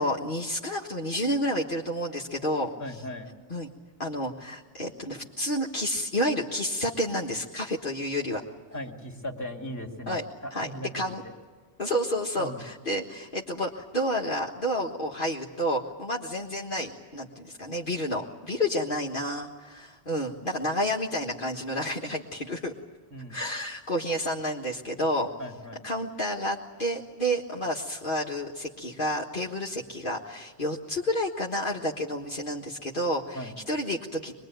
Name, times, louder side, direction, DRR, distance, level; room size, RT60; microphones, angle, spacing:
voice 1, 0.0-2.7 3.5-3.7 4.0-8.4 10.1-10.2 10.5-11.2 11.8-22.7 23.3-25.3 25.8-34.3, equal, 45° left, -2 dB, 1.7 m, -30 dB
voice 2, 2.8-3.3 8.7-11.0 11.2-11.3 12.4-12.6 23.1-23.4 25.4-25.9 33.3-33.6, left 1 dB, 15° left, 0 dB, 2.7 m, -38 dB
24.5 x 21.5 x 9.1 m, 1.5 s
omnidirectional pair, 1.2 m